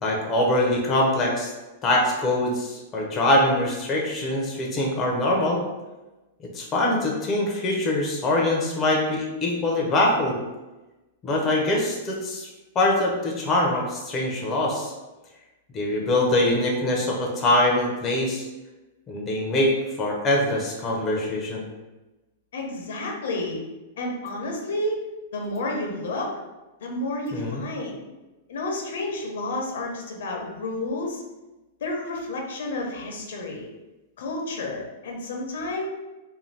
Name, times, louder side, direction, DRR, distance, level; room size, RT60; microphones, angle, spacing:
voice 1, 0.0-1.5 1.8-5.6 6.5-10.4 11.2-12.5 12.7-14.9 15.7-18.5 19.1-21.6 27.3-27.6, left 1 dB, 20° left, -2 dB, 0.6 m, -23 dB
voice 2, 22.5-23.6 24.0-25.0 25.3-26.3 26.8-28.0 28.5-31.2 31.8-33.7 34.2-35.9, left 2 dB, 75° left, 0 dB, 0.6 m, -30 dB
2.6 x 2.2 x 3.2 m, 1.1 s
supercardioid pair, 150°, 0 cm